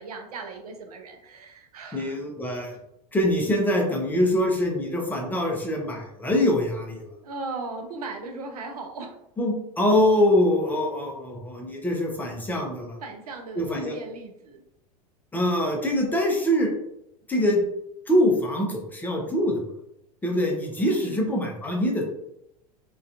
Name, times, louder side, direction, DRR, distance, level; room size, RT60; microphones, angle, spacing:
voice 1, 0.0-2.2 7.2-9.1 13.0-14.6 21.0-21.4, right 3 dB, 70° right, 4 dB, 0.5 m, -37 dB
voice 2, 1.9-2.7 3.1-7.1 9.4-13.0 13.6-13.9 15.3-16.7 17.3-17.6 18.1-19.6 20.2-22.0, left 1 dB, 10° left, -1 dB, 0.4 m, -24 dB
2.3 x 2.3 x 2.4 m, 0.81 s
figure-of-eight pair, 80°, 20 cm